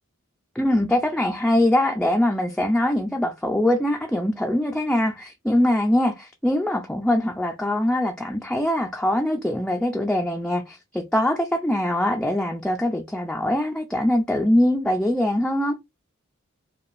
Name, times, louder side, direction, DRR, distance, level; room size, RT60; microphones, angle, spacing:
voice 1, 0.6-15.8, left 1 dB, 5° left, 0.4 m, -22 dB
4.8 x 2.5 x 2.5 m
head